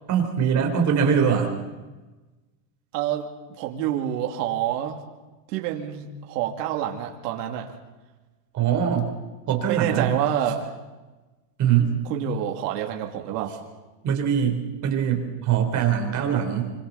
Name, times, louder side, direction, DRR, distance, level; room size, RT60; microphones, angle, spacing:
voice 1, 0.1-1.5 8.5-9.1 9.5-10.1 11.6-11.9 14.0-16.7, right 8 dB, 35° right, 4 dB, 3.8 m, -22 dB
voice 2, 2.9-3.3 3.6-5.0 5.5-7.7 9.6-10.7 12.1-13.6, right 10 dB, 75° right, 2 dB, 2.7 m, -27 dB
26.5 x 25.0 x 4.1 m, 1.2 s
supercardioid pair, 150°, 49 cm